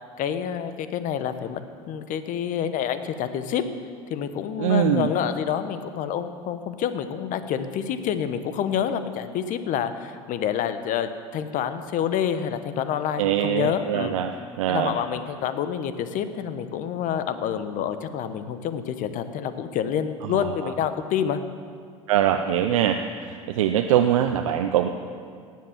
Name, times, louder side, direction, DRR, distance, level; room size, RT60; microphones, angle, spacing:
voice 1, 0.2-1.6 1.9-3.6 4.1-14.1 14.7-21.4, left 9 dB, 50° left, 10 dB, 1.1 m, -28 dB
voice 2, 4.6-5.1 13.2-14.3 14.6-14.9 20.3-20.7 22.1-24.9, right 10 dB, 80° right, 6 dB, 0.7 m, -23 dB
18.0 x 7.5 x 7.4 m, 2.2 s
hypercardioid pair, 80°, 17 cm